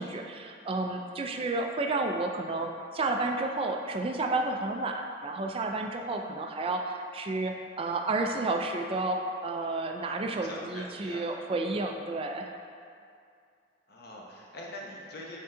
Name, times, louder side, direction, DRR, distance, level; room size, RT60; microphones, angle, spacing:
voice 1, 0.0-12.5, right 2 dB, 30° right, 3 dB, 0.3 m, -31 dB
voice 2, 10.3-11.2 13.9-15.4, left 1 dB, 60° left, -3 dB, 1.0 m, -43 dB
6.9 x 3.6 x 3.8 m, 2.4 s
head